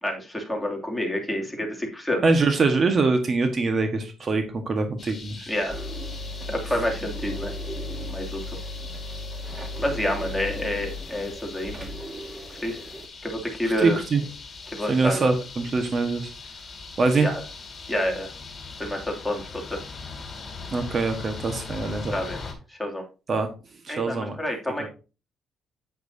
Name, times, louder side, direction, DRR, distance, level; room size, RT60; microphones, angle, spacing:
voice 1, 0.0-2.2 5.5-5.8 6.5-7.5 8.1-8.4 9.8-11.9 12.6-12.8 13.2-14.0 14.7-15.3 17.2-17.4 17.9-18.3 18.8-19.8 22.1-23.0 23.9-24.9, left 1 dB, 5° left, 0 dB, 2.7 m, -28 dB
voice 2, 2.2-5.5 13.8-14.2 14.9-16.3 17.0-17.3 20.7-22.1 23.3-23.5 23.8-24.4 24.8-24.9, right 3 dB, 45° right, 6 dB, 1.4 m, -23 dB
sound 1, 5.0-22.5, left 4 dB, 35° left, 3.1 m, -41 dB
sound 2, 5.7-13.1, left 1 dB, 25° right, 1.9 m, -35 dB
8.8 x 8.4 x 2.8 m, 0.32 s
cardioid pair, 90°, 0 cm